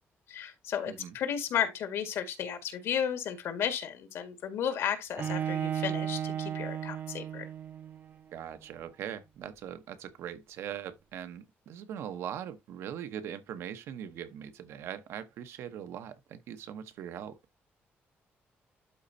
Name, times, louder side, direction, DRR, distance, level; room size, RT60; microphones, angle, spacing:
voice 1, 0.3-7.5, left 8 dB, 80° left, 1.8 m, -33 dB
Bowed string instrument, 5.2-8.1, right 9 dB, 45° right, 0.5 m, -34 dB
voice 2, 8.3-17.4, right 9 dB, 90° right, 1.0 m, -41 dB
12.0 x 4.2 x 2.7 m
cardioid pair, 140°, 4 cm